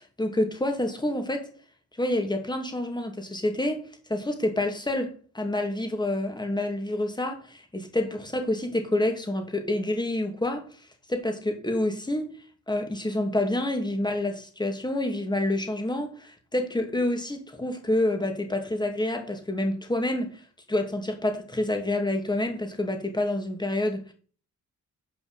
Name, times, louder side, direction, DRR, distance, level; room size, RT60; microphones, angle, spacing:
voice 1, 0.0-1.5 2.0-3.8 4.1-10.7 11.1-12.3 12.7-20.4 20.7-24.1, left 1 dB, 15° left, 2.9 m, -28 dB
9.9 x 5.4 x 8.2 m
cardioid pair, 80°, 30 cm